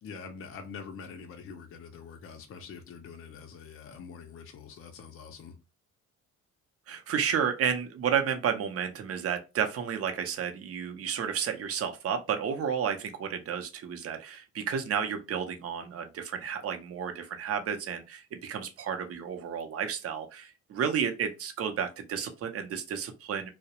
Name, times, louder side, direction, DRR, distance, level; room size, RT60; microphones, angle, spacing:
voice 1, 0.0-5.6, left 5 dB, 45° left, 0.5 m, -45 dB
voice 2, 6.9-23.5, right 7 dB, 50° right, 0.6 m, -32 dB
2.3 x 2.0 x 2.8 m
cardioid pair, 90°, 30 cm